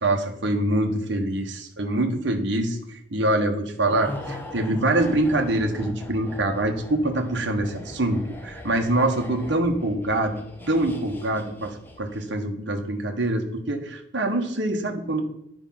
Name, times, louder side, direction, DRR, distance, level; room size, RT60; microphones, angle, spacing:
voice 1, 0.0-10.4 10.7-15.2, right 1 dB, 65° right, 3 dB, 1.2 m, -25 dB
sound 1, 3.9-12.4 12.7-12.8, left 1 dB, 10° left, 1.0 m, -40 dB
9.8 x 5.0 x 5.7 m, 0.78 s
head